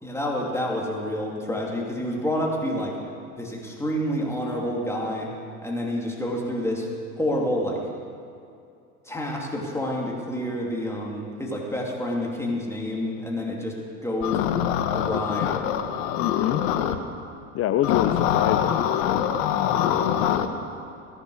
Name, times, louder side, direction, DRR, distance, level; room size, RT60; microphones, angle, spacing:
voice 1, 0.0-3.0 3.4-5.3 5.6-6.9 7.2-7.8 9.0-13.8 14.0-14.4 14.9-15.5, left 1 dB, 5° left, -2 dB, 2.7 m, -28 dB
sound 1, 14.2-17.0 17.8-20.5, left 10 dB, 65° left, 1.2 m, -24 dB
voice 2, 16.2-16.6 17.5-18.8 19.5-20.1, left 11 dB, 35° left, 9 dB, 0.6 m, -26 dB
18.0 x 10.5 x 6.4 m, 2.5 s
hypercardioid pair, 100°, 41 cm